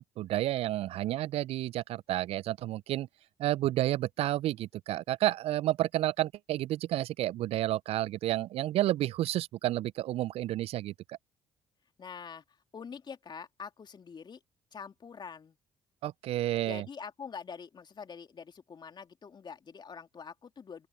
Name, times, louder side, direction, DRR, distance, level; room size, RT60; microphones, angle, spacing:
voice 1, 0.0-3.1 3.4-11.2 16.0-16.9, right 14 dB, 60° right, 0.4 m, -31 dB
voice 2, 12.0-14.4 14.7-15.6 16.6-20.9, left 6 dB, 40° left, 2.9 m, -45 dB
open air
hypercardioid pair, 55°, 11 cm